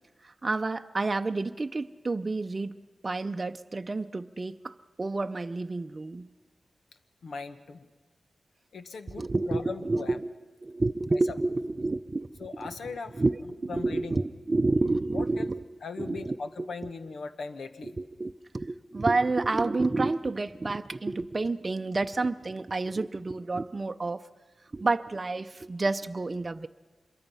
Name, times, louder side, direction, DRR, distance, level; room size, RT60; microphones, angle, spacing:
voice 1, 0.2-2.7 3.0-6.3 9.1-10.3 10.6-15.6 16.0-16.7 17.8-24.2 24.7-26.7, right 3 dB, 35° right, 8 dB, 0.6 m, -29 dB
voice 2, 7.2-7.9 8.7-10.2 11.1-11.2 12.4-13.2 13.7-14.3 15.1-15.5 15.8-18.0, left 4 dB, 85° left, 9 dB, 1.2 m, -39 dB
26.0 x 22.5 x 5.5 m, 1.4 s
wide cardioid pair, 90°, 0 cm